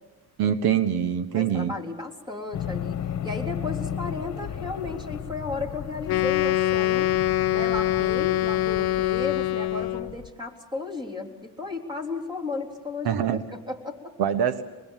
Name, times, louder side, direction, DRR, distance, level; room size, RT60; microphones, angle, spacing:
voice 1, 0.4-1.7 13.0-13.4 14.2-14.6, right 9 dB, 70° right, 11 dB, 1.1 m, -24 dB
voice 2, 1.3-3.0 3.2-7.1 7.5-14.2, left 3 dB, 10° right, 2 dB, 3.5 m, -34 dB
sound 1, 2.5-10.3, left 9 dB, 45° left, 1.5 m, -35 dB
Wind instrument woodwind instrument, 6.1-10.2, left 14 dB, 70° left, 0.9 m, -24 dB
26.0 x 21.0 x 7.3 m, 1.2 s
cardioid pair, 120°, 38 cm